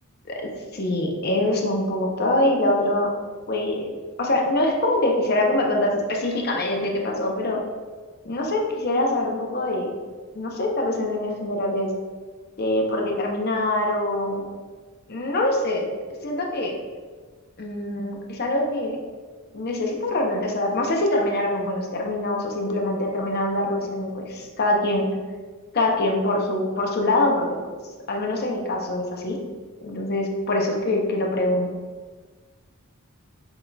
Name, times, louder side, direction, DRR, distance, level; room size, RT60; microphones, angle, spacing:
voice 1, 0.3-3.1 3.5-7.6 8.2-9.9 10.3-11.9 12.6-14.4 15.1-15.9 16.2-16.7 17.6-19.0 19.5-25.1 25.7-27.7 28.1-29.4 29.8-31.7, left 1 dB, 45° left, 1 dB, 0.7 m, -24 dB
6.0 x 4.0 x 2.2 m, 1.4 s
head